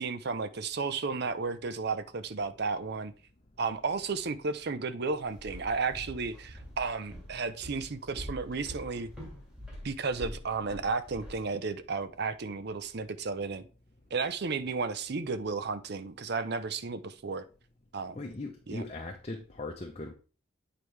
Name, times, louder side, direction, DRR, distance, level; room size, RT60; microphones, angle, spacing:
voice 1, 0.0-3.1 3.6-9.1 9.8-13.7 14.1-17.4 17.9-18.2 18.7-18.8, right 4 dB, 50° right, 0.6 m, -33 dB
Walk footsteps, 5.3-11.4, equal, 5° right, 2.0 m, -45 dB
voice 2, 18.1-20.1, left 2 dB, 30° left, 0.7 m, -39 dB
8.9 x 4.7 x 3.3 m
head